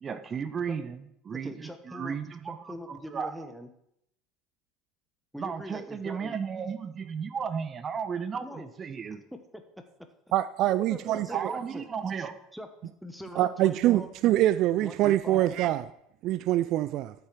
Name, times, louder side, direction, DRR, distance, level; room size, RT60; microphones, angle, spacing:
voice 1, 0.0-3.3 5.4-9.2 11.3-12.4, right 6 dB, 30° right, 0.8 m, -34 dB
voice 2, 1.4-2.2 2.4-3.7 5.3-6.3 8.4-8.7 9.3-10.1 10.8-11.9 12.5-14.1 14.8-15.5, equal, ahead, 1.0 m, -43 dB
voice 3, 10.3-11.5 13.4-15.8 16.2-17.1, right 14 dB, 50° right, 0.3 m, -25 dB
12.5 x 6.8 x 4.6 m
figure-of-eight pair, 70°, 0 cm